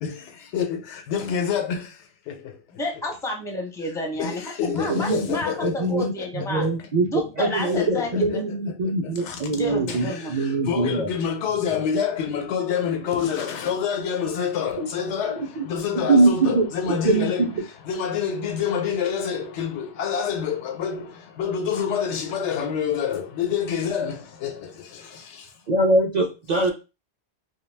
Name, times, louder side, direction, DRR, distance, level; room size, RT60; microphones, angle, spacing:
voice 1, 0.0-2.6 4.2-6.7 7.5-8.4 8.8-9.5 9.9-17.5 17.8-25.5, left 7 dB, 85° left, 0.9 m, -28 dB
voice 2, 2.7-6.7 7.0-8.5 9.5-10.3, left 1 dB, 5° left, 0.4 m, -30 dB
voice 3, 4.9-5.2 5.6-7.1 7.4-11.1 14.8-14.9 15.6-15.7 15.9-17.6 25.7-26.7, right 2 dB, 55° right, 0.5 m, -23 dB
2.3 x 2.2 x 3.2 m
omnidirectional pair, 1.2 m